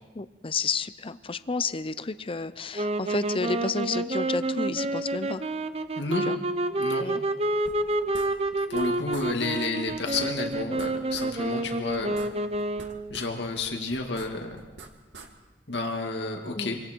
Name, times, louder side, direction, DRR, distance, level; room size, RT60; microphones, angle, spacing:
voice 1, 0.1-5.4 6.2-6.4 7.0-7.2 16.5-16.8, left 4 dB, 30° left, 14 dB, 0.7 m, -31 dB
sound 1, 2.7-13.1, right 2 dB, 35° right, 0.9 m, -29 dB
voice 2, 6.0-6.3 6.8-7.1 8.7-12.2 13.1-14.6 15.7-16.8, left 3 dB, 70° left, 3 dB, 2.4 m, -31 dB
sound 2, 7.7-8.9 9.1-9.3 9.5-9.6 9.9-11.3 11.6-13.3 13.6-15.3, right 3 dB, 75° right, 2.1 m, -45 dB
26.0 x 26.0 x 4.6 m, 1.3 s
head